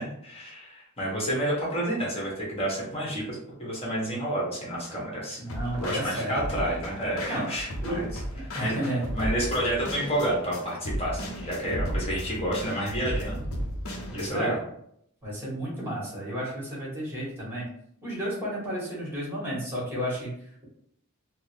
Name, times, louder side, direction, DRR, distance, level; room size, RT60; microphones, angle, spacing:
voice 1, 0.0-5.4 5.7-8.1 8.6-8.7 9.1-13.5 14.1-14.6, right 1 dB, 30° left, -4 dB, 1.2 m, -30 dB
voice 2, 5.4-6.4 7.3-7.5 7.8-8.0 8.3-9.0 14.1-14.6 15.2-17.7 18.0-20.6, right 1 dB, 10° right, -5 dB, 1.3 m, -32 dB
sound 1, 5.5-14.3, equal, 80° left, 0.7 m, -35 dB
3.6 x 2.1 x 3.2 m, 0.70 s
head